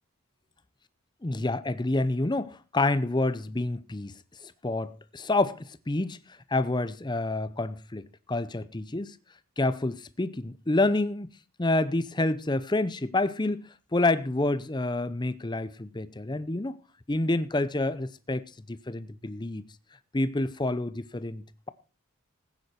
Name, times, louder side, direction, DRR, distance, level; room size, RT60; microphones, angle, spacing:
voice 1, 1.2-4.1 4.4-6.2 6.5-9.2 9.6-11.3 11.6-16.8 17.1-19.6 20.1-21.7, left 2 dB, 20° left, 0.6 m, -28 dB
15.5 x 9.7 x 4.3 m
head